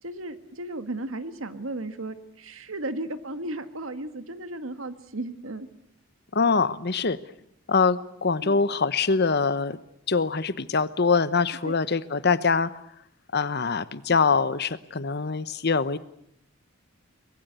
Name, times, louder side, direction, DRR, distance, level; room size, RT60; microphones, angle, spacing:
voice 1, 0.0-5.7 8.4-8.6 11.6-11.7, right 2 dB, 75° right, 10 dB, 1.8 m, -35 dB
voice 2, 6.3-7.2 7.7-9.8 10.1-12.7 13.3-16.0, left 4 dB, 50° left, 15 dB, 1.0 m, -24 dB
24.5 x 21.0 x 8.2 m, 0.75 s
head